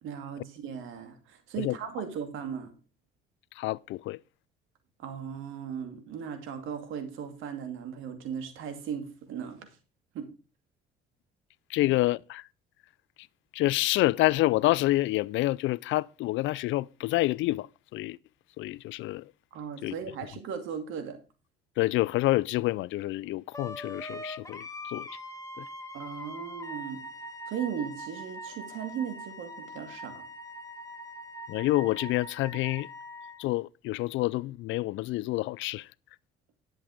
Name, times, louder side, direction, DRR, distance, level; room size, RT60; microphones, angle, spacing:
voice 1, 0.0-2.7 5.0-9.7 10.1-10.3 11.8-11.9 19.5-21.2 25.9-27.0 27.5-30.2, right 8 dB, 70° right, 2.5 m, -37 dB
voice 2, 3.6-4.2 11.7-12.4 13.5-18.2 18.6-19.3 19.8-20.0 21.8-25.1 25.6-25.7 31.5-32.9 33.4-35.9, left 17 dB, 70° left, 0.4 m, -28 dB
Wind instrument woodwind instrument, 23.5-33.4, equal, 15° left, 2.1 m, -42 dB
11.0 x 7.8 x 5.1 m
supercardioid pair, 80°, 21 cm